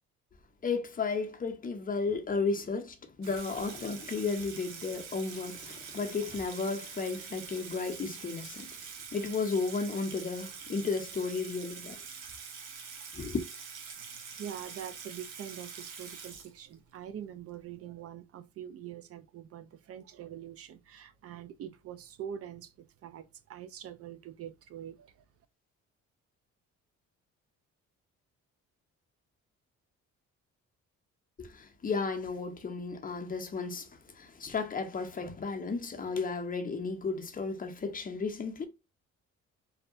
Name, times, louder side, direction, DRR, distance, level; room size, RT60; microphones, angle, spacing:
voice 1, 0.6-8.7 9.1-12.0 13.1-13.4 31.4-33.9 34.2-38.7, left 4 dB, 30° left, 0.7 m, -33 dB
Water tap faucet / Sink (filling or washing), 3.2-17.0, right 6 dB, 85° right, 0.7 m, -45 dB
voice 2, 14.4-25.1, right 9 dB, 50° right, 0.4 m, -44 dB
2.7 x 2.1 x 2.4 m
cardioid pair, 90°, 30 cm